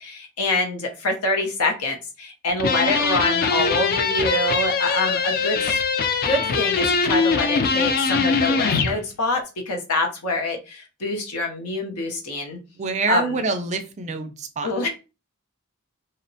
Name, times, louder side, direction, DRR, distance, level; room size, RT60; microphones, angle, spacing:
voice 1, 0.0-5.8 6.2-12.6 13.1-13.4 14.6-14.9, left 2 dB, 80° left, 3 dB, 0.7 m, -25 dB
sound 1, 2.6-9.0, left 5 dB, 40° left, 0.3 m, -22 dB
voice 2, 12.7-14.9, right 4 dB, 30° right, 7 dB, 0.3 m, -27 dB
2.8 x 2.1 x 2.6 m, 0.30 s
head